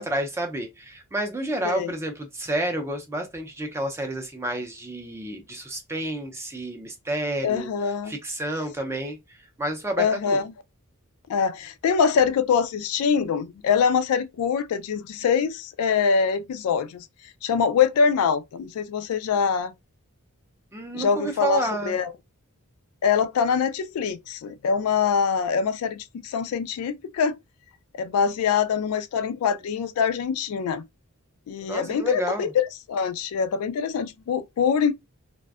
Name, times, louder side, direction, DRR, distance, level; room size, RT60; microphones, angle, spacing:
voice 1, 0.0-10.4 20.7-22.0 31.7-32.5, right 1 dB, 10° right, 0.4 m, -30 dB
voice 2, 7.4-8.1 10.0-10.5 11.3-17.1 17.4-19.7 20.9-22.1 23.0-27.4 27.9-30.8 31.5-34.9, left 6 dB, 70° left, 0.3 m, -24 dB
2.5 x 2.1 x 2.3 m
head